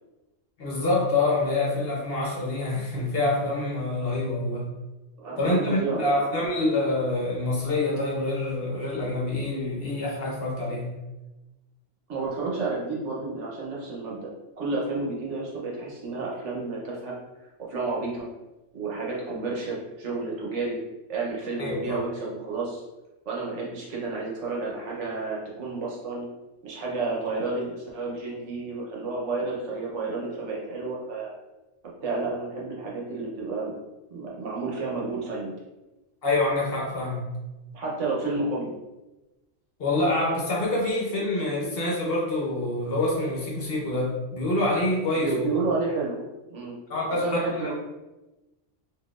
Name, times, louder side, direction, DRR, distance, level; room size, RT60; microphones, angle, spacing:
voice 1, 0.6-4.7 5.4-11.0 21.6-22.0 36.2-37.2 39.8-45.5 46.9-47.5, left 2 dB, 55° left, -4 dB, 1.0 m, -26 dB
voice 2, 5.2-6.5 12.1-14.3 14.6-17.1 17.6-18.3 18.7-20.8 21.1-22.8 23.3-26.3 26.6-31.3 32.0-33.8 34.1-35.5 37.7-38.7 45.1-46.8 47.1-47.7, right 3 dB, 70° right, -4 dB, 1.1 m, -31 dB
3.9 x 2.7 x 2.4 m, 1.1 s
omnidirectional pair, 1.3 m